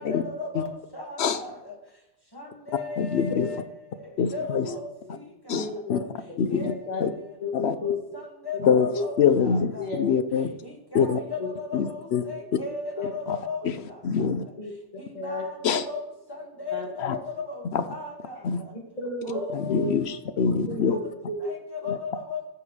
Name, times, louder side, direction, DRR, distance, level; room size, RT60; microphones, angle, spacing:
voice 1, 0.0-1.7 2.4-3.6 4.3-4.8 5.5-5.6 6.5-6.7 8.1-9.8 10.6-12.0 12.2-13.6 15.2-16.0 16.6-17.6 17.9-18.4 19.2-19.9 21.5-22.4, left 4 dB, 20° left, -1 dB, 2.0 m, -35 dB
voice 2, 3.0-3.5 4.2-4.7 5.5-6.0 6.4-6.7 7.0-7.1 7.5-7.8 8.6-8.9 9.2-10.5 10.9-11.2 11.7-12.2 13.3-13.4 14.0-14.4 15.6-15.8 17.0-17.1 17.7-17.8 18.4-18.6 19.5-21.0, left 6 dB, 70° left, 11 dB, 0.9 m, -24 dB
voice 3, 5.5-6.0 6.4-8.0 8.8-9.0 9.8-10.0 11.4-11.5 12.4-12.5 12.9-13.1 14.6-14.8 15.1-15.8 16.7-17.2 18.7-19.4 19.7-19.9 20.6-21.5 21.8-21.9, left 2 dB, 35° left, -2 dB, 2.3 m, -33 dB
15.5 x 7.0 x 3.3 m, 0.90 s
omnidirectional pair, 1.2 m